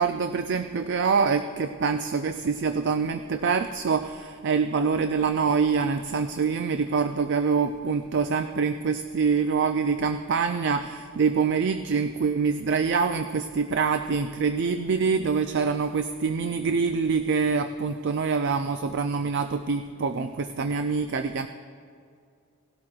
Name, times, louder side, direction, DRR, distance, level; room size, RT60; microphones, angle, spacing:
voice 1, 0.0-21.5, right 5 dB, 50° right, 8 dB, 0.4 m, -25 dB
18.5 x 12.0 x 2.4 m, 2.3 s
head